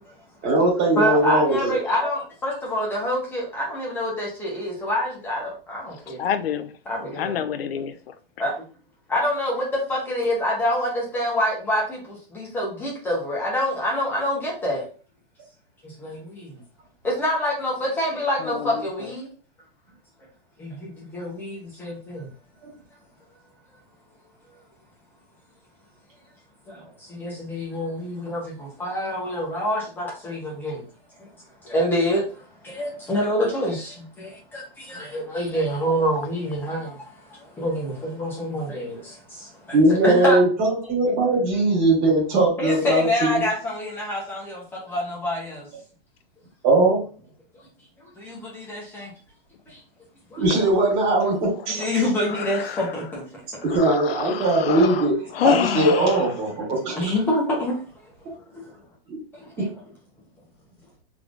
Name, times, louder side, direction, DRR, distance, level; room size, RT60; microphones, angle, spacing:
voice 1, 0.4-1.8 22.6-22.7 39.7-43.4 46.6-47.0 50.4-51.9 53.6-55.2 55.4-57.0 59.1-59.2 59.6-59.7, right 2 dB, 25° right, -3 dB, 1.9 m, -20 dB
voice 2, 1.0-6.2 6.9-7.4 8.4-8.5 9.1-14.9 15.8-16.6 17.0-19.3 20.6-22.3 26.7-30.8 31.2-31.3 31.6-39.8 40.0-40.4 42.6-45.7 48.0-49.1 49.7-49.8 50.3-50.4 51.7-53.4 56.9-57.8 58.5-58.6 59.3-59.7, left 1 dB, 5° left, -3 dB, 0.7 m, -27 dB
voice 3, 6.2-6.7 7.1-7.9 18.4-18.9 51.8-51.9 52.3-52.9 53.7-55.1 55.3-56.2, left 8 dB, 80° left, 9 dB, 0.6 m, -27 dB
3.6 x 3.4 x 2.4 m, 0.37 s
supercardioid pair, 170°, 30 cm